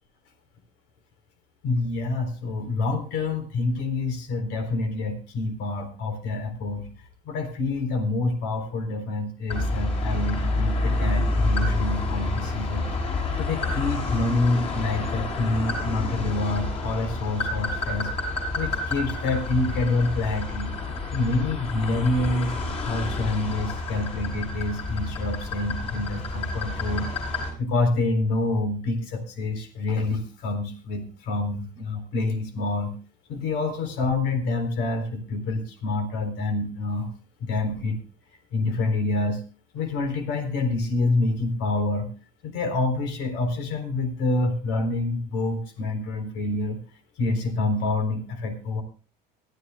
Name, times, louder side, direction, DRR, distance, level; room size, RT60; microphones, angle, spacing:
voice 1, 1.6-6.9 7.3-18.1 18.5-20.7 21.1-22.5 22.8-27.1 27.6-32.9 33.3-37.1 37.4-38.0 38.5-39.4 39.7-42.1 42.4-46.8 47.2-48.8, left 2 dB, 65° left, 7 dB, 3.9 m, -27 dB
sound 1, 9.5-27.5, left 2 dB, 30° left, 6.2 m, -29 dB
22.0 x 12.5 x 2.3 m, 0.35 s
cardioid pair, 145°, 19 cm